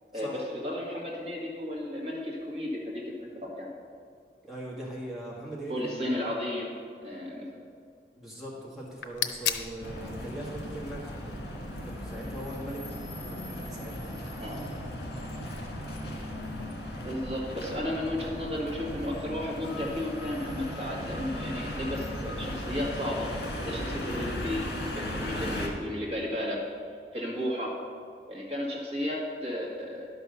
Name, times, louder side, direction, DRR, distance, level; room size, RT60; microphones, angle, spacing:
voice 1, 0.1-3.7 5.7-6.7 7.0-7.5 14.4-14.6 17.0-23.3 23.6-24.7 24.9-26.6 27.1-27.8 28.3-30.1, left 1 dB, 35° right, -3 dB, 1.8 m, -33 dB
voice 2, 4.4-6.2 8.2-14.3, right 1 dB, ahead, -6 dB, 1.7 m, -41 dB
sound 1, 8.8-14.0, left 9 dB, 80° left, 0.7 m, -39 dB
sound 2, 9.8-25.7, left 1 dB, 65° left, 2.0 m, -37 dB
11.5 x 5.7 x 6.6 m, 2.2 s
head